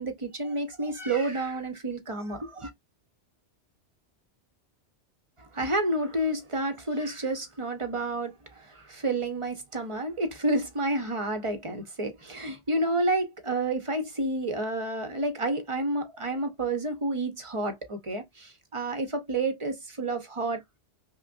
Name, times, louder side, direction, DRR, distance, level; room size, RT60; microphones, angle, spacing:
voice 1, 0.0-2.7 5.4-20.8, right 2 dB, 30° right, 0.8 m, -30 dB
5.6 x 2.1 x 2.5 m
omnidirectional pair, 1.2 m